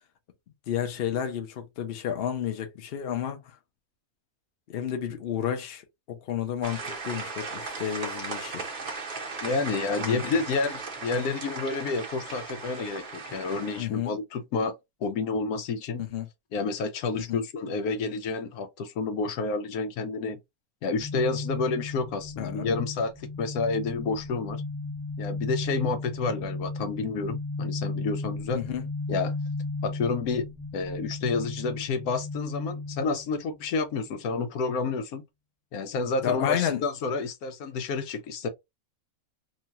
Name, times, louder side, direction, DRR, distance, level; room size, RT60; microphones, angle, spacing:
voice 1, 0.7-3.6 4.7-8.6 10.0-10.2 13.8-14.1 15.9-16.3 17.2-17.4 22.4-22.8 28.5-28.9 36.2-36.8, left 9 dB, 55° left, 0.7 m, -31 dB
sound 1, 6.6-13.8, right 4 dB, 40° right, 0.9 m, -37 dB
voice 2, 9.4-14.7 15.0-16.0 16.5-20.4 20.8-24.6 25.2-28.6 29.1-29.3 29.8-30.5 30.7-35.2 35.7-38.5, left 4 dB, 80° left, 1.1 m, -29 dB
sound 2, 20.9-34.0, left 3 dB, 30° left, 0.4 m, -35 dB
3.0 x 2.2 x 2.7 m
omnidirectional pair, 1.6 m